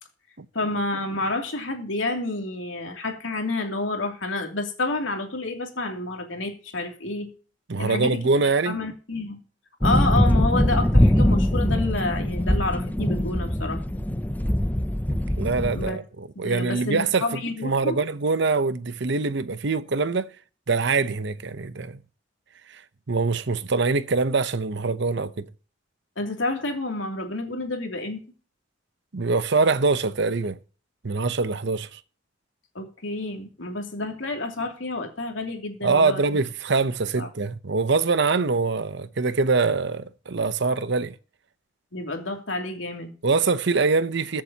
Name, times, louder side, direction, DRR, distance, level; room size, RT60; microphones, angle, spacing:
voice 1, 0.5-7.3 7.8-8.2 8.7-9.4 9.8-13.8 15.7-16.0 16.4-18.0 26.2-28.2 32.7-36.2 37.2-37.3 41.9-43.1, left 2 dB, 90° left, 2.8 m, -29 dB
voice 2, 7.7-8.8 15.1-17.3 17.6-20.3 20.7-22.0 22.7-22.8 23.1-25.5 29.1-30.6 31.0-32.0 35.8-41.1 43.2-44.4, right 4 dB, 65° right, 0.8 m, -24 dB
sound 1, 9.8-15.9, left 1 dB, 10° left, 0.6 m, -22 dB
22.0 x 7.6 x 2.9 m
head